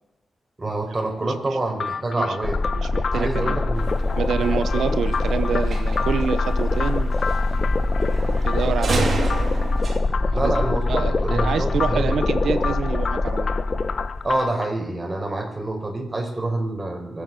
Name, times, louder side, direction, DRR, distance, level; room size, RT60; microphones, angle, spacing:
voice 1, 0.6-2.6 3.1-4.0 4.4-4.6 10.3-12.2 14.2-17.2, right 2 dB, 30° right, 2 dB, 5.2 m, -27 dB
voice 2, 1.2-1.6 2.2-2.4 2.7-3.6 4.2-7.1 8.4-9.2 10.2-10.5 10.9-13.5, right 7 dB, 90° right, 13 dB, 1.0 m, -27 dB
sound 1, 1.8-14.7, left 5 dB, 70° left, 0.7 m, -32 dB
sound 2, 2.4-14.4, left 2 dB, 40° left, 1.3 m, -23 dB
sound 3, 3.7-10.0, right 4 dB, 60° right, 2.6 m, -31 dB
25.0 x 8.7 x 6.3 m, 0.94 s
cardioid pair, 60°, 0 cm